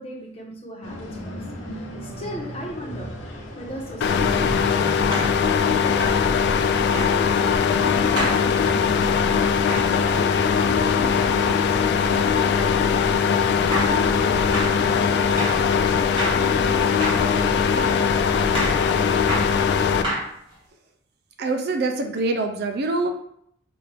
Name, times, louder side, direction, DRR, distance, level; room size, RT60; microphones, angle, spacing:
voice 1, 0.0-3.1 3.6-6.1 6.7-9.4 9.9-19.1, equal, 30° left, -2 dB, 1.0 m, -39 dB
sound 1, 0.8-20.0, equal, 75° left, 1.0 m, -37 dB
sound 2, 4.0-20.0, left 6 dB, 55° left, 0.3 m, -20 dB
sound 3, 4.0-4.2 5.1-5.4 6.0-6.2 6.9-7.1 8.2-8.4 9.7-9.9 13.0-13.1 13.7-14.0 14.5-14.7 15.4-15.6 16.2-16.4 17.0-17.3 17.8-18.0 18.5-18.8 19.3-19.5 20.0-20.5, equal, 25° right, 1.9 m, -28 dB
voice 2, 21.4-23.1, right 3 dB, 55° right, 5 dB, 0.5 m, -24 dB
5.8 x 2.6 x 3.3 m, 0.70 s
head